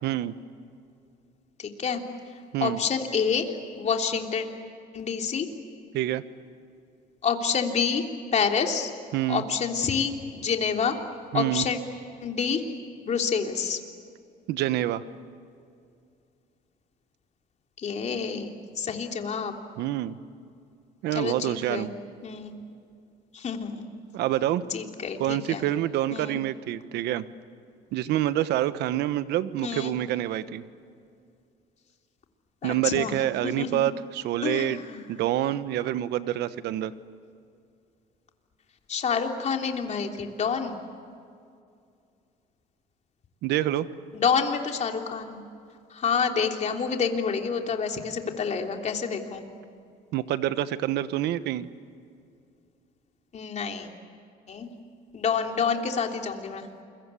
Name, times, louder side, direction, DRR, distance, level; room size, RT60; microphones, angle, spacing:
voice 1, 0.0-0.3 2.5-2.8 5.9-6.2 9.1-9.4 11.3-11.7 14.5-15.0 19.8-20.2 21.0-21.9 24.1-24.6 25.2-27.2 27.9-30.6 32.6-34.8 35.1-36.9 43.4-43.9 50.1-51.7, right 13 dB, 85° right, 13 dB, 1.2 m, -27 dB
voice 2, 1.6-2.0 2.6-4.4 4.9-5.5 7.2-8.0 8.3-8.9 9.3-11.0 11.3-11.8 12.2-12.7 13.0-13.8 17.8-18.5 18.7-19.6 21.1-21.9 22.2-22.5 23.3-23.8 24.7-25.7 26.1-26.4 29.6-29.9 32.6-33.1 33.4-33.8 34.4-35.0 38.9-40.8 44.1-45.4 45.9-49.4 53.3-53.9 54.5-54.7 55.1-56.7, left 6 dB, 40° left, 3 dB, 3.2 m, -28 dB
29.0 x 23.0 x 8.4 m, 2.4 s
cardioid pair, 110°, 17 cm